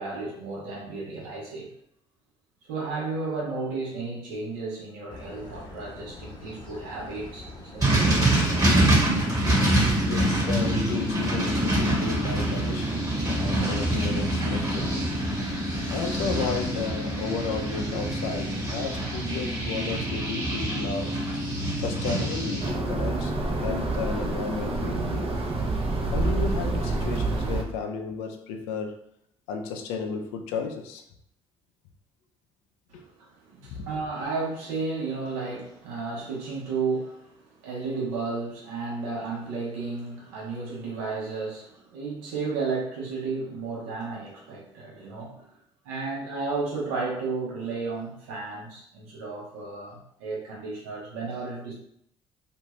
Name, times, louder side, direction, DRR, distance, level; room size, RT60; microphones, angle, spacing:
voice 1, 0.0-1.7 2.7-7.5 7.7-8.4 9.0-9.3 32.9-45.5 45.8-51.7, right 4 dB, 80° right, 0.9 m, -33 dB
sound 1, 5.1-19.7, left 2 dB, 30° left, 0.9 m, -43 dB
sound 2, 7.8-22.7, right 1 dB, 25° right, 1.1 m, -25 dB
voice 2, 10.1-21.2 21.8-23.3 23.6-25.3 26.1-29.0 29.5-31.0 32.9-33.0, left 5 dB, 80° left, 0.4 m, -33 dB
sound 3, 22.6-27.6, right 2 dB, 40° right, 0.6 m, -27 dB
2.5 x 2.4 x 3.0 m
hypercardioid pair, 55°, 14 cm